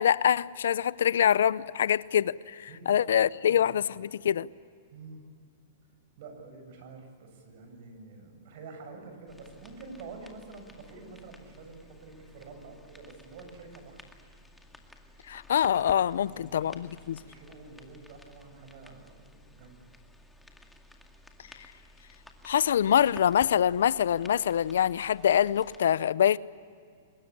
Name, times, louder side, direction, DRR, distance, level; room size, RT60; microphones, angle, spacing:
voice 1, 0.0-4.5 15.3-17.2 22.4-26.4, left 9 dB, 75° left, 20 dB, 0.6 m, -25 dB
voice 2, 2.7-3.0 3.5-3.6 4.9-5.2 6.2-14.0 16.1-19.9, right 3 dB, 60° right, 5 dB, 7.5 m, -48 dB
sound 1, 9.3-25.8, left 1 dB, 5° left, 2.2 m, -54 dB
24.0 x 21.5 x 10.0 m, 2.2 s
hypercardioid pair, 125°, 0 cm